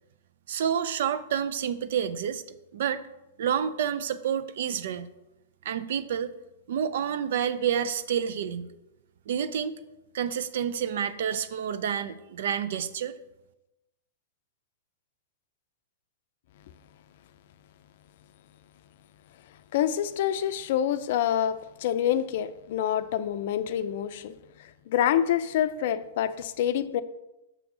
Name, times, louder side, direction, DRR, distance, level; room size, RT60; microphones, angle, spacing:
voice 1, 0.5-2.4 2.7-3.0 3.4-5.1 5.6-6.3 6.7-8.7 9.3-9.8 10.1-13.2, right 8 dB, 65° right, 13 dB, 0.5 m, -29 dB
voice 2, 19.7-24.3 24.6-27.0, left 10 dB, 60° left, 13 dB, 0.4 m, -27 dB
6.9 x 3.6 x 6.0 m, 0.96 s
hypercardioid pair, 120°, 0 cm